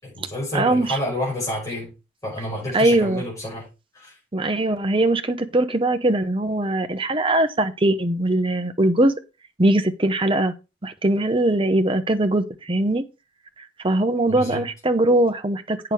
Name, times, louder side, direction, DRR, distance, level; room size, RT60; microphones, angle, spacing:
voice 1, 0.0-1.9 2.2-3.7 3.9-4.2 14.3-14.6, left 1 dB, 20° left, 6.3 m, -29 dB
voice 2, 0.5-1.0 2.7-3.2 4.3-9.1 9.6-10.5 10.8-13.1 13.8-15.9, right 1 dB, 30° right, 1.0 m, -21 dB
8.9 x 5.9 x 4.9 m
head